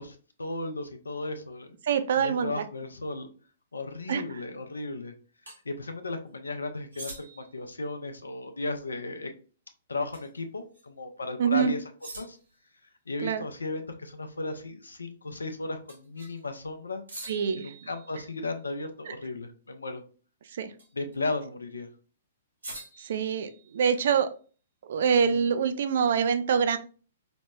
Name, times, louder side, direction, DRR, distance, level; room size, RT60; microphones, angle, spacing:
voice 1, 0.0-1.8 2.2-3.3 3.7-5.1 5.7-9.3 9.9-11.8 12.2-12.4 13.1-17.0 17.6-20.0 20.9-21.9 25.3-25.4, left 2 dB, 85° left, 7 dB, 0.4 m, -35 dB
voice 2, 1.9-2.6 4.1-4.2 11.4-11.7 13.2-13.5 17.3-17.7 19.1-19.2 20.6-20.7 23.0-24.3 24.9-26.8, right 7 dB, 60° right, 11 dB, 0.3 m, -25 dB
sound 1, 5.5-5.6 6.9-7.6 10.1-10.4 10.7-10.8 12.0-12.6 15.9-16.4 17.1-18.5 20.8-21.2 22.6-24.0, right 2 dB, 85° right, 1.2 m, -45 dB
5.0 x 2.0 x 2.2 m, 0.39 s
hypercardioid pair, 120°, 0 cm